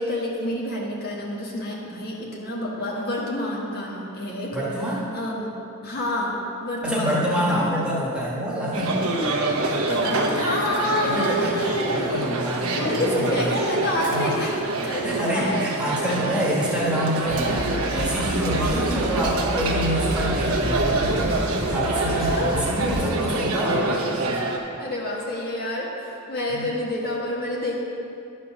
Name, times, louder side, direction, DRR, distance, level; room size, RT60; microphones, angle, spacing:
voice 1, 0.0-4.6 5.1-5.5 5.8-7.9 9.9-12.3 12.7-14.5 14.8-15.6 16.1-16.2 22.1-22.6 24.8-27.8, left 1 dB, 45° left, -3 dB, 1.4 m, -28 dB
voice 2, 4.5-5.0 6.8-9.0 11.0-11.6 11.9-13.5 14.1-14.4 15.0-24.0 26.5-26.7, equal, 5° right, -6 dB, 1.5 m, -27 dB
sound 1, 8.7-24.6, right 2 dB, 80° right, 1.0 m, -26 dB
sound 2, 17.3-23.1, right 1 dB, 55° right, 1.1 m, -30 dB
11.0 x 4.4 x 6.2 m, 2.6 s
head